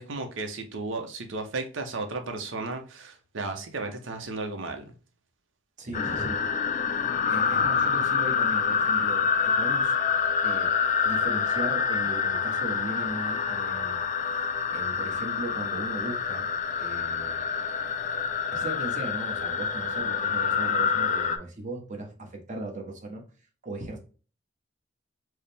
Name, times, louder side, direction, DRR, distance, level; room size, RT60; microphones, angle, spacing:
voice 1, 0.0-4.9, right 3 dB, 70° right, 0.8 m, -34 dB
voice 2, 5.8-6.4 7.2-10.0 10.4-10.8 11.0-14.1 14.3-16.5 16.8-17.4 18.5-23.2 23.6-24.0, right 2 dB, 40° right, 1.0 m, -37 dB
sound 1, 5.9-21.4, left 6 dB, 40° left, 0.3 m, -27 dB
4.7 x 2.1 x 3.3 m
head